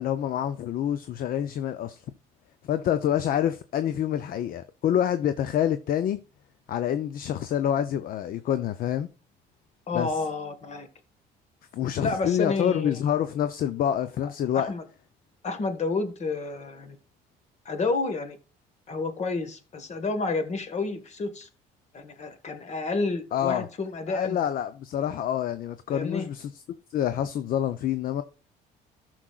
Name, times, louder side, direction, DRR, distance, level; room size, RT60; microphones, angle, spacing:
voice 1, 0.0-2.0 2.7-6.2 6.7-9.1 9.9-10.1 11.7-14.7 23.3-23.7 24.1-26.6 26.9-28.2, left 10 dB, 60° left, 0.6 m, -27 dB
voice 2, 9.9-10.9 12.0-13.0 14.5-14.8 15.4-17.0 17.7-18.4 18.9-21.5 21.9-24.4 25.9-26.3, left 3 dB, 40° left, 1.6 m, -30 dB
14.0 x 6.3 x 2.4 m
cardioid pair, 110°, 17 cm